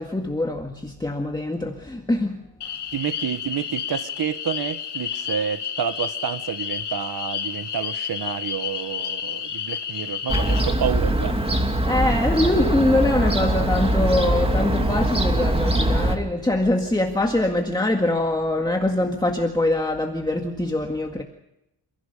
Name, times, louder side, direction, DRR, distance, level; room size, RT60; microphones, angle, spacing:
voice 1, 0.0-2.4 11.8-21.2, left 1 dB, 10° left, 1.9 m, -23 dB
sound 1, 2.6-10.6, left 8 dB, 70° left, 3.1 m, -31 dB
voice 2, 2.9-11.4, right 8 dB, 60° right, 1.5 m, -29 dB
Fowl / Gull seagull, 10.3-16.2, right 1 dB, 15° right, 2.7 m, -22 dB
29.0 x 16.0 x 6.8 m
wide cardioid pair, 130°, 42 cm